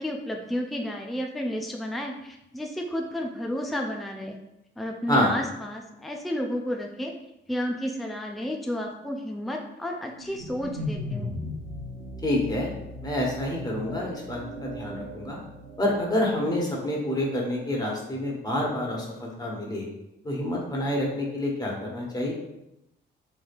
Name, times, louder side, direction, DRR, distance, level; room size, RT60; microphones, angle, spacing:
voice 1, 0.0-4.4 4.8-7.1 7.5-11.3, equal, ahead, 2 dB, 0.4 m, -32 dB
sound 1, 10.1-16.4, left 1 dB, 80° right, 0.9 m, -37 dB
voice 2, 12.2-12.8 13.0-15.4 15.8-19.9 20.2-22.3, left 1 dB, 20° left, -2 dB, 1.2 m, -28 dB
3.8 x 3.3 x 2.5 m, 0.87 s
cardioid pair, 90°, 20 cm